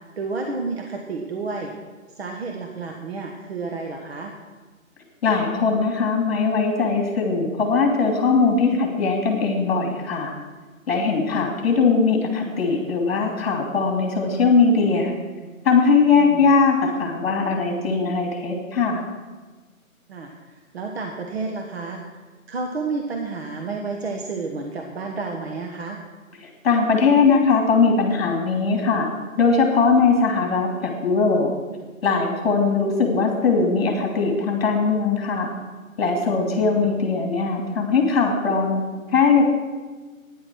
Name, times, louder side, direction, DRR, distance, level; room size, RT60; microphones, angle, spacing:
voice 1, 0.2-1.7 2.2-4.3 16.1-16.5 20.1-20.3 20.7-22.0 22.5-26.0 36.5-36.9, right 4 dB, 45° right, 2 dB, 1.4 m, -30 dB
voice 2, 5.2-10.3 10.9-15.1 15.6-19.0 26.4-29.1 29.4-31.5 32.0-35.5 36.0-38.8 39.1-39.4, left 4 dB, 45° left, 2 dB, 2.8 m, -20 dB
13.5 x 10.0 x 6.2 m, 1.3 s
figure-of-eight pair, 155°, 42 cm